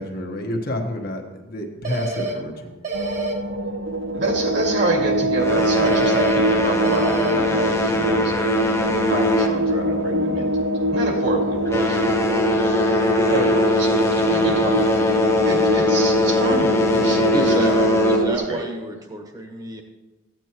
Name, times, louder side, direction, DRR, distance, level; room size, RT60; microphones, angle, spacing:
voice 1, 0.0-2.8, left 1 dB, 50° left, 2 dB, 1.2 m, -29 dB
sound 1, 1.8-2.3 2.8-3.3 5.8-6.3 6.8-7.3, right 3 dB, 35° right, 1.2 m, -27 dB
sound 2, 2.9-18.4, right 1 dB, 75° right, 0.7 m, -23 dB
voice 2, 4.1-10.5 10.9-12.6 13.3-14.9 15.4-17.9 18.3-18.6, right 1 dB, 60° right, 1 dB, 2.1 m, -28 dB
sound 3, 5.4-10.3 10.6-10.9 11.5-18.5, left 2 dB, 15° left, 0.7 m, -22 dB
voice 3, 17.3-19.8, right 1 dB, 20° right, 3 dB, 1.3 m, -29 dB
15.0 x 9.0 x 3.0 m, 1.1 s
head